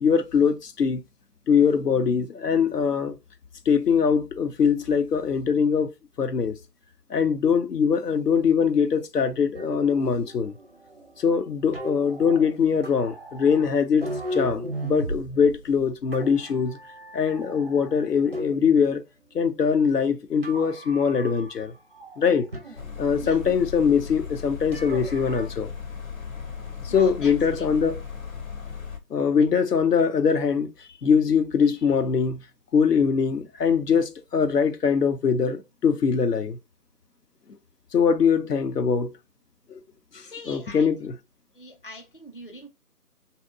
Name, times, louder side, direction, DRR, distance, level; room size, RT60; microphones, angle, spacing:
voice 1, 0.0-1.0 1.5-3.2 3.7-5.9 6.2-6.6 7.1-10.5 11.2-16.8 17.1-19.0 19.3-21.7 22.2-22.5 23.0-25.7 26.8-28.0 29.1-30.7 31.0-32.4 32.7-36.6 37.9-39.1 39.7-39.8 40.1-41.2, left 6 dB, 90° left, 0.7 m, -22 dB
sound 1, 9.5-18.9 19.3-20.1 20.4-21.6 21.9-23.6 24.7-25.5, right 1 dB, 45° right, 0.4 m, -37 dB
sound 2, 22.8-29.0, left 6 dB, 60° left, 0.8 m, -37 dB
voice 2, 26.9-27.6 40.2-40.9 41.5-42.7, left 1 dB, 35° left, 0.4 m, -42 dB
2.8 x 2.1 x 3.4 m
figure-of-eight pair, 155°, 46 cm